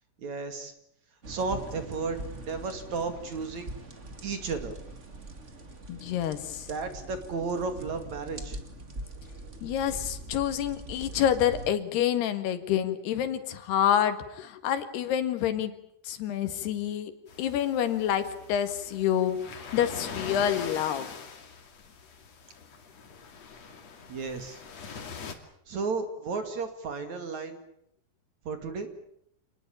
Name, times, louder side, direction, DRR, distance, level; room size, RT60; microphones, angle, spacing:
voice 1, 0.2-0.7 1.3-2.2 2.5-3.7 4.2-4.7 6.7-8.6 24.1-24.6 25.7-27.6 28.5-28.9, right 4 dB, 50° right, 8 dB, 3.3 m, -33 dB
sound 1, 1.2-11.7, right 2 dB, 25° right, 1.7 m, -42 dB
voice 2, 5.9-6.7 9.6-15.7 16.1-17.1 17.4-21.1, left 10 dB, 80° left, 10 dB, 3.8 m, -28 dB
sound 2, 17.3-25.3, left 5 dB, 45° left, 3.4 m, -43 dB
28.0 x 20.0 x 8.8 m, 0.74 s
omnidirectional pair, 4.7 m